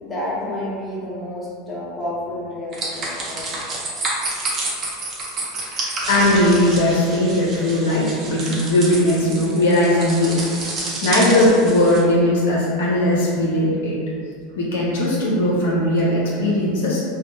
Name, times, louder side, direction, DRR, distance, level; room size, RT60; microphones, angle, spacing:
voice 1, 0.0-3.6, left 1 dB, 20° left, -7 dB, 0.8 m, -30 dB
sound 1, 2.7-12.0, right 2 dB, 40° right, 0.6 m, -29 dB
voice 2, 5.7-10.4 11.0-14.0 14.6-17.0, left 1 dB, 80° left, -5 dB, 0.5 m, -18 dB
2.5 x 2.0 x 2.6 m, 2.2 s
hypercardioid pair, 90°, 0 cm